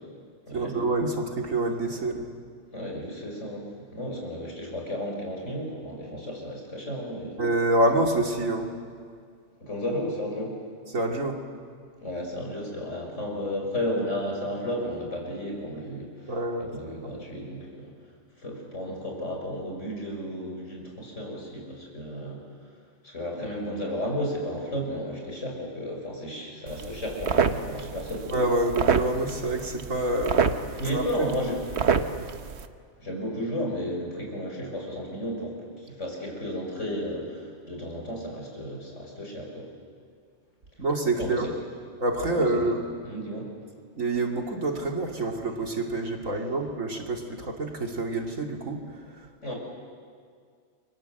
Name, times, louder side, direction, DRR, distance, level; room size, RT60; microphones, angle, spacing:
voice 1, 0.5-2.3 7.4-8.7 10.9-11.4 16.3-16.7 17.0-17.1 28.3-31.3 31.9-32.3 40.8-41.5 42.0-42.8 44.0-48.8, right 2 dB, 75° right, 2 dB, 2.9 m, -27 dB
voice 2, 2.7-7.4 9.6-10.6 12.0-17.9 18.4-22.4 23.0-28.4 30.8-31.6 33.0-39.7 41.2-41.5 42.3-42.7 43.0-43.5 49.4-49.6, equal, 60° left, 0 dB, 6.3 m, -33 dB
sound 1, 26.7-32.7, right 6 dB, 55° right, 1.2 m, -28 dB
29.5 x 24.0 x 7.9 m, 2.1 s
omnidirectional pair, 1.4 m